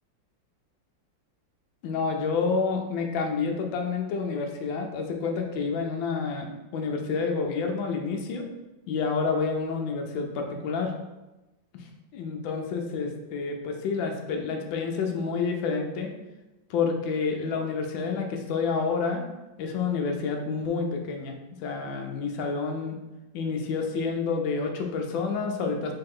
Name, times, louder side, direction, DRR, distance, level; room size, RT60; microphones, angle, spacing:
voice 1, 1.8-8.4 8.9-10.9 11.8-16.1 16.7-19.2 19.6-23.0 23.3-25.9, left 5 dB, 80° left, 3 dB, 1.3 m, -29 dB
3.7 x 3.3 x 3.6 m, 1.0 s
omnidirectional pair, 2.1 m